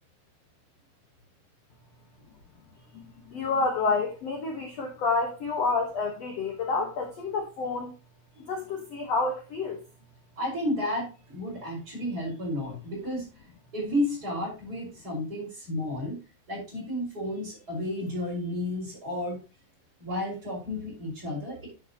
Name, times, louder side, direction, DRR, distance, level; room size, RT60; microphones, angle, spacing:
voice 1, 2.9-7.9 8.5-9.8, left 3 dB, 70° left, 2 dB, 1.5 m, -29 dB
voice 2, 10.4-13.3 13.7-16.2 16.5-19.4 20.0-21.7, left 1 dB, 20° right, -3 dB, 4.7 m, -32 dB
9.8 x 7.8 x 2.8 m, 0.31 s
omnidirectional pair, 4.6 m